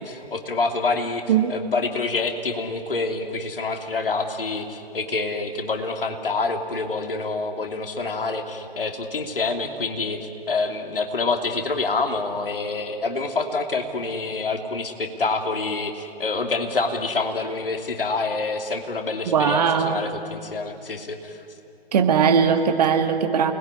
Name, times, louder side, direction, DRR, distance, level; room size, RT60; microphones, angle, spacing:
voice 1, 0.0-1.2 1.5-21.4, left 3 dB, 65° left, 5 dB, 2.9 m, -27 dB
voice 2, 19.3-20.0 21.9-23.5, right 7 dB, 40° right, 7 dB, 2.0 m, -19 dB
29.0 x 20.5 x 9.8 m, 2.8 s
figure-of-eight pair, 130°, 31 cm